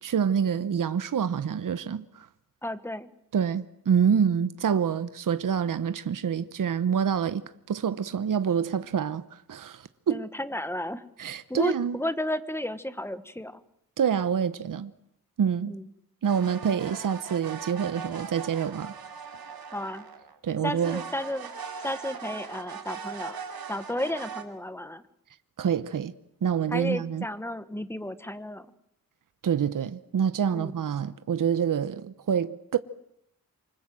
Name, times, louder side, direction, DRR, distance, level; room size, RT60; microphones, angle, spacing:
voice 1, 0.0-2.3 3.3-9.2 9.5-10.2 11.2-12.0 14.0-14.9 15.4-15.7 16.2-18.9 20.4-21.0 25.6-26.1 26.4-27.2 29.4-32.8, right 7 dB, 60° right, 1.0 m, -27 dB
voice 2, 2.6-3.1 10.1-11.0 11.5-13.6 15.7-15.9 19.7-20.1 20.6-21.5 21.8-23.4 23.7-25.0 26.7-28.7 30.5-30.7, left 1 dB, 5° left, 1.3 m, -33 dB
sound 1, 16.3-20.4 20.7-24.4, right 6 dB, 85° right, 2.8 m, -40 dB
27.5 x 25.0 x 7.7 m
wide cardioid pair, 160°, 35 cm